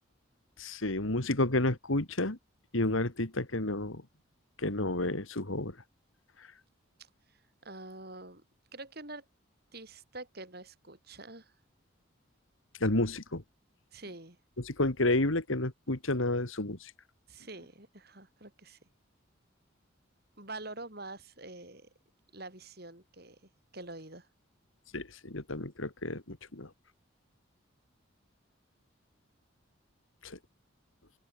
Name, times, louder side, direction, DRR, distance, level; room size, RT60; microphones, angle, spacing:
voice 1, 0.6-2.4 2.7-4.0 4.6-5.7 12.8-13.4 14.7-16.8 24.9-26.7 30.2-30.3, left 2 dB, 70° left, 2.4 m, -30 dB
voice 2, 7.0-7.4 7.6-8.4 8.7-9.2 9.7-11.5 13.9-14.4 17.3-18.8 20.4-21.9 22.3-24.3, right 2 dB, 50° right, 6.0 m, -46 dB
open air
head